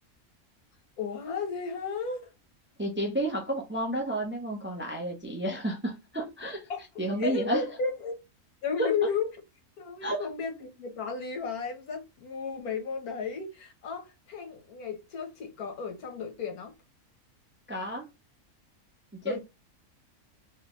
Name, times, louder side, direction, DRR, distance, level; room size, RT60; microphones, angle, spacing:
voice 1, 1.0-2.3 6.7-8.1 8.6-9.3 9.8-16.7 19.2-19.4, left 5 dB, 90° left, 1.6 m, -34 dB
voice 2, 2.8-6.7 7.0-7.6 8.8-8.9 10.0-10.3 17.7-18.1 19.1-19.4, right 1 dB, 10° right, 0.5 m, -31 dB
3.5 x 3.2 x 3.1 m
omnidirectional pair, 1.5 m